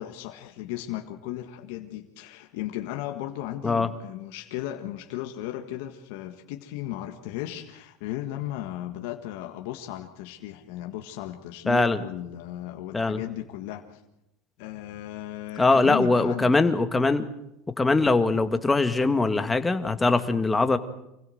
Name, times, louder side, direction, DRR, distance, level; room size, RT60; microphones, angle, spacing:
voice 1, 0.0-14.0 14.6-16.7, left 13 dB, 75° left, 4 dB, 1.6 m, -36 dB
voice 2, 11.7-12.0 12.9-13.2 15.6-17.3 17.8-20.8, left 3 dB, 15° left, 9 dB, 1.8 m, -22 dB
26.0 x 16.5 x 7.9 m, 0.85 s
supercardioid pair, 110°, 0 cm